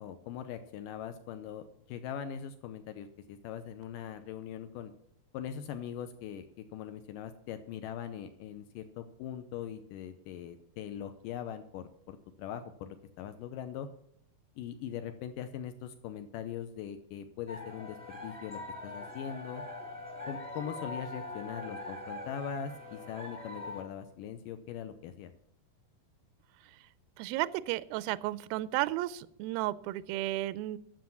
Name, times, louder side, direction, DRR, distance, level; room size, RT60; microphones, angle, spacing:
voice 1, 0.0-4.9 5.3-6.5 6.7-13.9 14.6-19.6 20.3-25.3, left 9 dB, 90° left, 9 dB, 1.9 m, -41 dB
sound 1, 17.5-23.8, left 2 dB, 5° right, 0.7 m, -42 dB
voice 2, 27.2-30.8, right 16 dB, 85° right, 17 dB, 2.1 m, -33 dB
11.5 x 7.6 x 7.1 m, 0.73 s
omnidirectional pair, 4.7 m